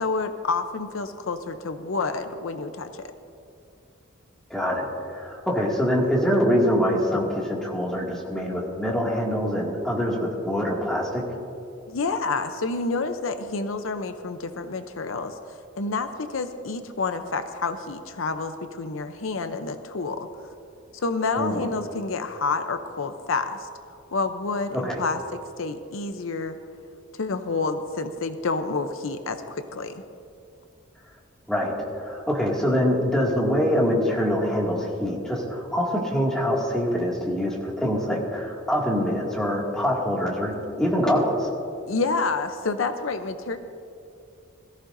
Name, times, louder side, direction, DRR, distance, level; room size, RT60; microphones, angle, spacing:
voice 1, 0.0-3.1 11.9-20.3 20.9-23.7 24.1-25.2 25.6-26.6 27.1-30.0 41.9-43.6, left 3 dB, 75° left, 8 dB, 0.7 m, -29 dB
voice 2, 4.5-11.3 21.4-21.7 24.7-25.0 31.5-31.8 32.0-41.5, equal, 5° left, -4 dB, 2.2 m, -24 dB
21.0 x 14.5 x 2.6 m, 2.7 s
head